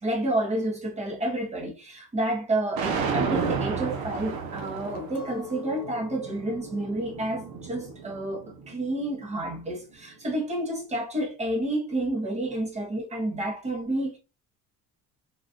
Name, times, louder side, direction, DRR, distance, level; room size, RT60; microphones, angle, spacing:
voice 1, 0.0-14.2, right 1 dB, 20° right, 0.9 m, -30 dB
sound 1, 2.8-8.9, right 5 dB, 75° right, 0.7 m, -32 dB
Chink clink, 5.1-9.4 9.9-10.5, left 3 dB, 65° left, 0.6 m, -47 dB
3.5 x 2.4 x 2.4 m
cardioid pair, 175°, 36 cm